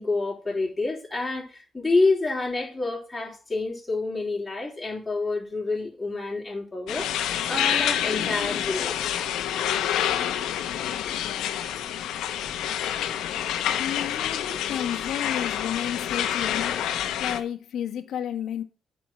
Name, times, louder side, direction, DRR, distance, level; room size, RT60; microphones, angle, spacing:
voice 1, 0.0-7.1 7.5-9.2, left 3 dB, 15° left, 3.4 m, -28 dB
sound 1, 6.9-17.4, left 10 dB, 85° left, 0.9 m, -28 dB
voice 2, 13.8-16.8 17.2-18.6, left 9 dB, 70° left, 1.2 m, -32 dB
8.6 x 4.5 x 7.2 m
cardioid pair, 90°, 0 cm